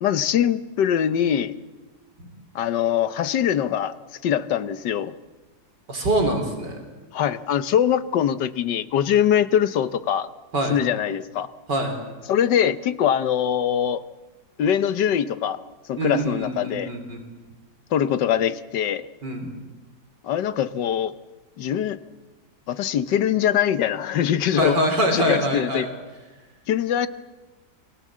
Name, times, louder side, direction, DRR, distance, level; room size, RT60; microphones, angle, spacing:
voice 1, 0.0-1.5 2.5-3.9 4.2-5.1 7.1-10.3 10.7-11.5 12.3-14.0 14.6-15.6 15.9-16.9 17.9-19.1 20.2-21.1 21.6-22.0 22.7-24.8 25.1-25.9 26.7-27.1, left 9 dB, 85° left, 13 dB, 1.6 m, -22 dB
voice 2, 5.9-6.9 10.5-10.8 11.7-12.0 16.0-17.2 19.2-19.6 24.5-25.9, right 1 dB, 80° right, 5 dB, 4.1 m, -24 dB
28.0 x 21.5 x 7.5 m, 1.2 s
omnidirectional pair, 1.8 m